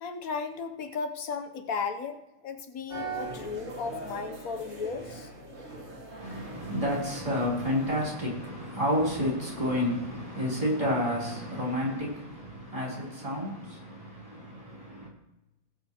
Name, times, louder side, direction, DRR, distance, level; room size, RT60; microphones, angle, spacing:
voice 1, 0.0-5.3, left 5 dB, 75° left, 1.3 m, -35 dB
sound 1, 2.9-8.0, right 3 dB, 50° right, 3.4 m, -41 dB
voice 2, 6.2-15.1, equal, 25° right, 3.5 m, -30 dB
19.5 x 7.8 x 2.9 m
omnidirectional pair, 1.5 m